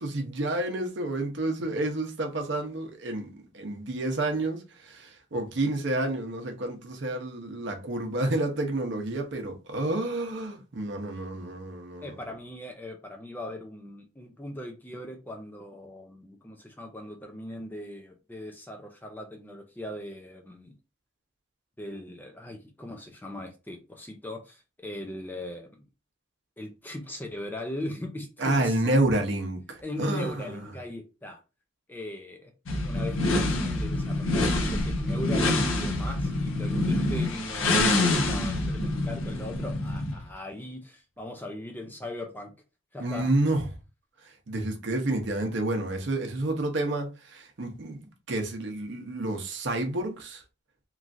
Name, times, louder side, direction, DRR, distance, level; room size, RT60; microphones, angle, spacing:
voice 1, 0.0-12.2 28.4-30.7 43.0-43.7 44.2-50.4, right 2 dB, 60° right, 0.7 m, -29 dB
voice 2, 12.0-20.7 21.8-25.8 26.6-28.8 29.8-31.4 31.9-32.5 32.8-42.5 42.9-43.3, left 1 dB, 10° left, 0.4 m, -39 dB
sound 1, 32.7-40.2, left 2 dB, 75° left, 0.7 m, -26 dB
3.0 x 2.4 x 2.5 m
head